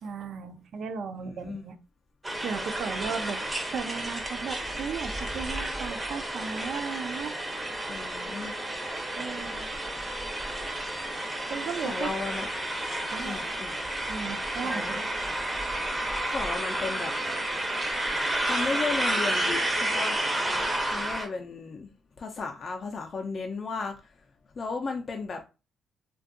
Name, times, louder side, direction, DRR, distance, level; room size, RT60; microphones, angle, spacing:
voice 1, 0.0-1.8 2.4-3.4 3.7-7.4 9.2-9.8 11.5-12.1 13.1-13.4 14.1-15.0, right 6 dB, 65° right, 0.4 m, -35 dB
voice 2, 1.2-1.6 7.9-8.5 11.8-12.5 13.2-13.7 14.6-15.0 16.3-17.1 18.5-20.2 20.9-21.9 22.2-23.9 24.6-25.4, left 4 dB, 45° left, 0.4 m, -34 dB
sound 1, 2.2-21.3, right 1 dB, 15° right, 0.6 m, -31 dB
2.6 x 2.2 x 2.5 m
cardioid pair, 90°, 0 cm